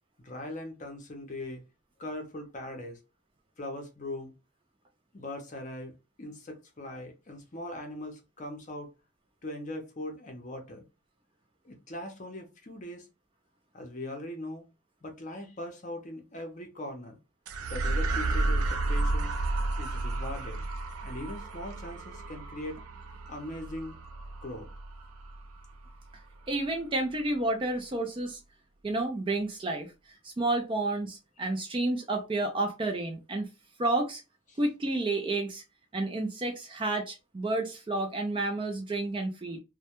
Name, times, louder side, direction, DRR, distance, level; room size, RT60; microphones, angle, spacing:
voice 1, 0.2-1.6 2.0-3.0 3.6-4.3 5.1-8.9 9.4-10.9 11.6-13.1 13.7-14.7 15.0-17.2 17.6-19.3 19.8-20.6 21.0-22.8 23.3-24.0 24.4-24.7 34.5-34.6, left 1 dB, 35° left, 0.6 m, -40 dB
sound 1, 17.5-26.1, right 2 dB, 85° right, 0.4 m, -32 dB
voice 2, 26.5-28.4 28.8-29.9 30.2-33.5 33.8-34.2 34.6-35.6 35.9-39.6, right 2 dB, 25° right, 0.3 m, -30 dB
2.2 x 2.1 x 2.8 m
head